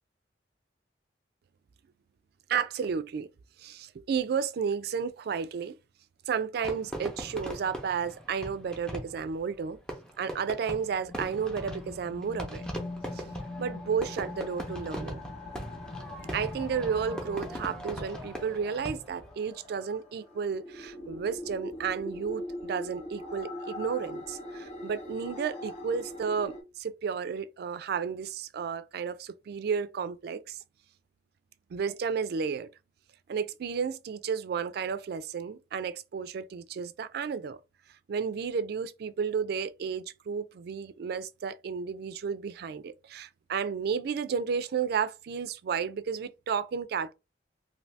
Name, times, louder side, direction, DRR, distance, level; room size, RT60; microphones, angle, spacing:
voice 1, 2.5-3.3 3.6-5.8 6.3-9.8 10.2-12.7 13.1-13.2 13.6-15.2 16.3-30.6 31.7-32.7 33.3-37.6 38.1-47.1, right 6 dB, 60° right, 0.3 m, -32 dB
Fireworks, 6.6-19.3, equal, 5° left, 0.7 m, -40 dB
sound 1, 10.8-26.6, left 2 dB, 35° left, 0.9 m, -42 dB
2.6 x 2.6 x 3.2 m
head